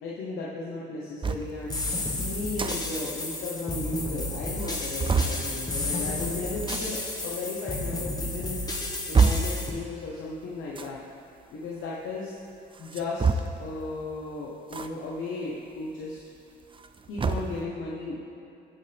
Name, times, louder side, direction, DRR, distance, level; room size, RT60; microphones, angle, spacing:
voice 1, 0.0-1.8 2.2-8.6 9.1-11.0 11.5-12.3 12.8-16.2 17.1-18.2, left 3 dB, 80° left, -5 dB, 1.1 m, -35 dB
sound 1, 1.2-1.5 2.4-2.8 3.1-3.2 3.4-3.5 4.1-4.2 4.6-5.4 6.6-6.8 7.7-7.8 8.4-9.6 10.7-11.0 12.7-13.7 14.7-14.9 15.3-15.4 16.6-17.6, right 5 dB, 25° right, 0.5 m, -26 dB
sound 2, 1.7-9.7, left 2 dB, 20° left, 1.4 m, -32 dB
15.5 x 5.7 x 3.5 m, 2.6 s
cardioid pair, 90°, 20 cm